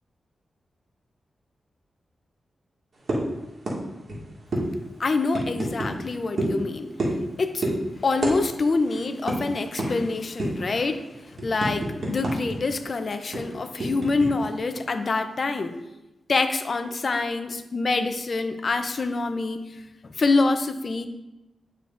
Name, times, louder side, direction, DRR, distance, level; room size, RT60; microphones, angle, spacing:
sound 1, 3.1-3.3 3.7-3.8 4.1-4.2 4.5-4.7 5.3-5.9 6.4-6.6 7.0-7.3 7.6-7.8 8.2-8.4 8.6-8.8 9.3-9.4 9.8-9.9 10.4-10.7 11.1-12.6 12.8-12.9 13.3-14.3, right 1 dB, 60° right, 2.0 m, -27 dB
voice 1, 5.0-6.9 7.4-7.6 8.0-11.0 11.4-15.7 16.3-19.6 20.2-21.1, left 3 dB, 50° left, 8 dB, 0.6 m, -25 dB
9.0 x 6.5 x 2.6 m, 0.98 s
wide cardioid pair, 90°, 0 cm